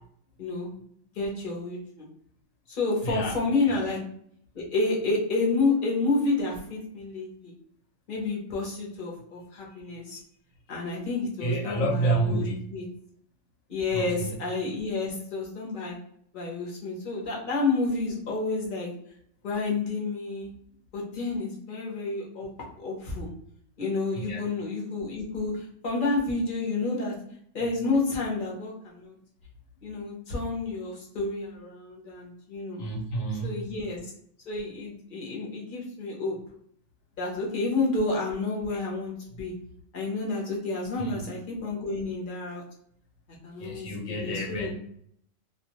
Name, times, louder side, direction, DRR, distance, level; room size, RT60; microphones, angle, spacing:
voice 1, 0.4-0.7 1.1-2.1 2.7-4.0 4.5-7.5 8.1-10.2 10.7-12.4 12.7-12.9 13.7-16.0 16.3-18.9 19.4-20.5 20.9-23.3 23.8-27.1 27.5-29.2 29.8-32.8 33.4-34.0 34.5-36.4 37.2-39.5 39.9-42.6 43.4-44.7, left 3 dB, 45° left, -3 dB, 0.8 m, -30 dB
voice 2, 11.4-12.7 13.9-14.3 24.2-24.4 32.8-33.5 41.0-41.2 43.6-44.7, right 2 dB, 75° left, -1 dB, 1.1 m, -29 dB
2.4 x 2.3 x 2.9 m, 0.66 s
omnidirectional pair, 1.4 m